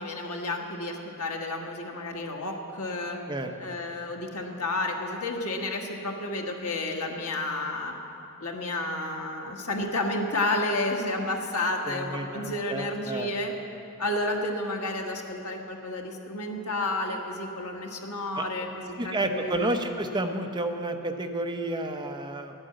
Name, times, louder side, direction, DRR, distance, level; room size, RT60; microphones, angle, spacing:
voice 1, 0.0-3.2 3.6-7.9 8.4-13.5 14.0-19.8, left 2 dB, 80° left, 1 dB, 1.5 m, -31 dB
voice 2, 3.3-3.7 11.9-13.3 18.4-18.5 19.0-22.5, right 1 dB, 20° right, 4 dB, 0.7 m, -31 dB
11.5 x 8.8 x 8.8 m, 2.7 s
head